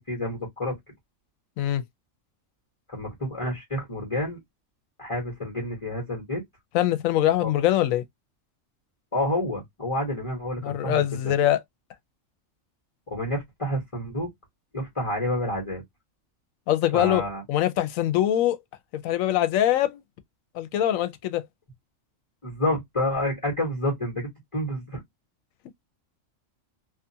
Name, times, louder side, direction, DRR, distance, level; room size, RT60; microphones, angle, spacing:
voice 1, 0.1-0.7 2.9-4.4 5.0-6.4 7.4-7.5 9.1-11.2 13.1-14.3 14.7-15.8 16.9-17.4 22.4-25.0, left 1 dB, 25° left, 1.0 m, -29 dB
voice 2, 6.7-8.0 10.6-11.6 16.7-17.2 17.5-18.6 18.9-20.0 20.5-21.4, left 12 dB, 80° left, 1.0 m, -23 dB
2.7 x 2.4 x 2.6 m
omnidirectional pair, 1.4 m